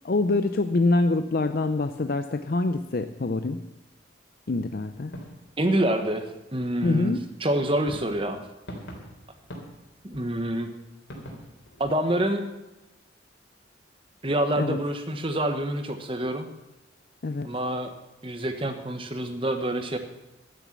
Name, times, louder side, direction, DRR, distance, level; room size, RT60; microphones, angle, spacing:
voice 1, 0.0-3.6 4.5-5.1 6.8-7.2 14.6-14.8 17.2-17.5, left 2 dB, 50° left, 9 dB, 0.5 m, -25 dB
sound 1, 4.9-6.4 7.9-12.2, equal, 75° left, 3.5 m, -45 dB
voice 2, 5.6-8.4 10.0-10.7 11.8-12.5 14.2-16.5 17.4-17.9 18.2-20.0, right 1 dB, 25° right, 7 dB, 1.2 m, -27 dB
12.0 x 9.2 x 7.4 m, 0.98 s
head